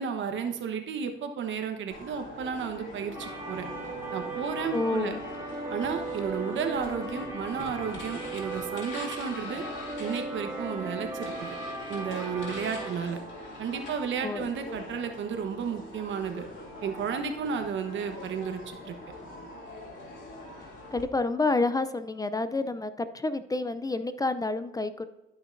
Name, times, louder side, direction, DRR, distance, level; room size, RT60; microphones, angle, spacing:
voice 1, 0.0-3.7 4.1-5.1 5.7-9.6 10.0-11.6 11.9-13.2 13.6-16.5 16.8-18.9, right 6 dB, 70° right, 6 dB, 1.1 m, -33 dB
sound 1, 1.9-21.0, left 1 dB, 70° left, 2.7 m, -43 dB
sound 2, 3.1-12.9, right 2 dB, 10° right, 2.3 m, -37 dB
voice 2, 4.7-5.2 14.2-14.5 20.9-25.1, left 3 dB, 20° left, 12 dB, 0.4 m, -29 dB
12.5 x 5.8 x 2.6 m, 1.1 s
cardioid pair, 90°, 20 cm